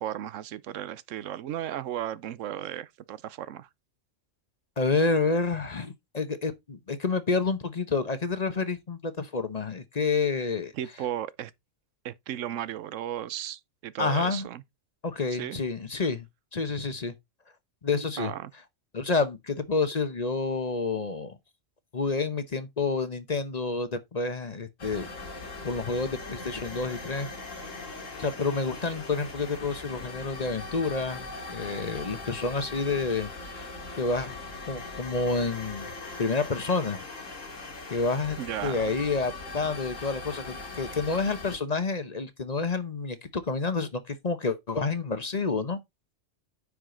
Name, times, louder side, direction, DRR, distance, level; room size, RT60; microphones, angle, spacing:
voice 1, 0.0-3.7 10.7-11.5 12.0-14.6 15.4-15.6 18.2-18.5 38.4-38.8, right 11 dB, 85° right, 1.0 m, -35 dB
voice 2, 4.8-10.7 14.0-14.5 15.0-16.2 16.5-17.1 17.8-18.3 18.9-21.4 21.9-25.1 25.6-27.3 28.2-33.7 34.0-34.4 34.7-35.9 36.2-37.0 37.9-38.4 38.6-45.8, left 4 dB, 35° left, 0.9 m, -29 dB
sound 1, 24.8-41.6, left 3 dB, 85° left, 2.6 m, -40 dB
9.6 x 4.9 x 3.8 m
omnidirectional pair, 1.3 m